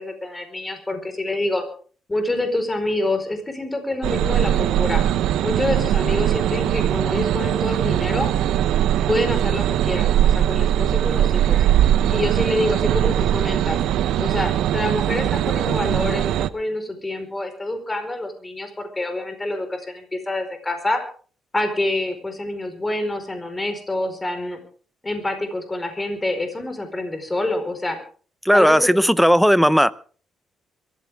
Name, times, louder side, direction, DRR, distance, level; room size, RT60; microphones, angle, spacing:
voice 1, 0.0-1.6 2.1-5.0 5.4-8.3 9.1-11.7 12.1-13.8 14.2-21.0 21.5-24.6 25.0-28.0 28.5-28.9, left 1 dB, 20° left, 7 dB, 4.7 m, -26 dB
sound 1, 4.0-16.5, right 11 dB, 85° right, 0.8 m, -20 dB
voice 2, 28.4-29.9, equal, ahead, 15 dB, 0.8 m, -15 dB
23.5 x 15.0 x 3.6 m, 0.42 s
cardioid pair, 90°, 0 cm